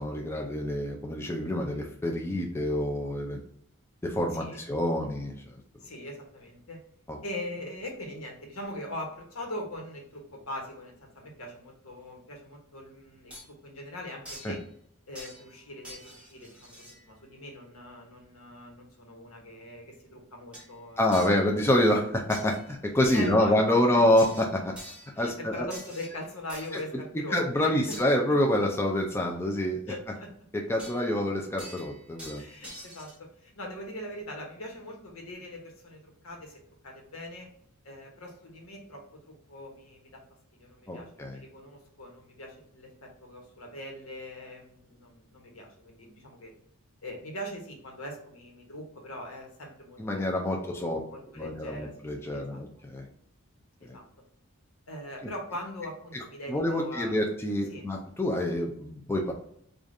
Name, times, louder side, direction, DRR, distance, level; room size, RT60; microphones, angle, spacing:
voice 1, 0.0-3.4 4.0-5.3 7.1-7.2 14.4-14.5 21.0-24.7 25.2-25.7 26.7-26.8 27.3-29.8 30.7-32.4 40.9-41.4 50.0-51.0 51.4-53.1 56.5-59.3, left 1 dB, 10° left, 0 dB, 0.4 m, -27 dB
voice 2, 4.3-4.7 5.8-6.8 7.2-14.6 15.1-21.2 23.1-23.6 23.9-24.1 25.1-28.0 29.9-30.3 32.4-37.5 37.8-40.2 40.5-46.5 47.0-51.9 52.3-52.6 53.8-54.0 54.9-57.3 57.7-57.8, left 1 dB, 85° left, 1 dB, 1.1 m, -41 dB
sound 1, 13.3-13.5 14.2-14.6 15.1-15.6 15.8-17.0 20.5-20.7 21.1-21.5 22.3-22.7 23.0-23.5 24.2-25.2 25.7-26.9 27.9-28.1 30.8-31.2 31.6-33.2, equal, 5° right, 0.9 m, -46 dB
4.9 x 2.4 x 2.6 m, 0.67 s
head